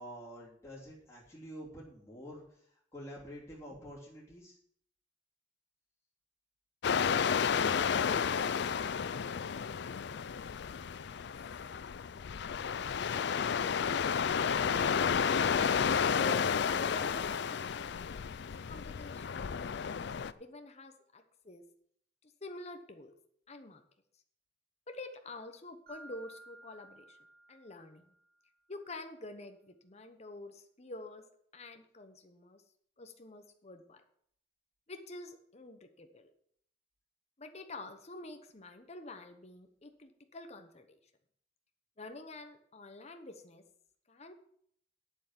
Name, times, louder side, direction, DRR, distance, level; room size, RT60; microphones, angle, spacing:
voice 1, 0.0-4.6, equal, 15° left, -7 dB, 3.1 m, -48 dB
sound 1, 6.8-20.3, left 6 dB, 60° left, 0.4 m, -32 dB
voice 2, 16.1-21.6 22.2-23.1 23.5-23.8 24.9-27.2 27.5-28.1 28.7-31.2 31.5-32.6 33.0-34.0 34.9-36.3 37.4-41.0 42.0-43.6 44.1-44.3, left 2 dB, 35° left, 6 dB, 1.1 m, -48 dB
Mallet percussion, 25.9-28.4, right 2 dB, 50° right, 4.4 m, -55 dB
9.0 x 7.5 x 7.4 m, 0.67 s
head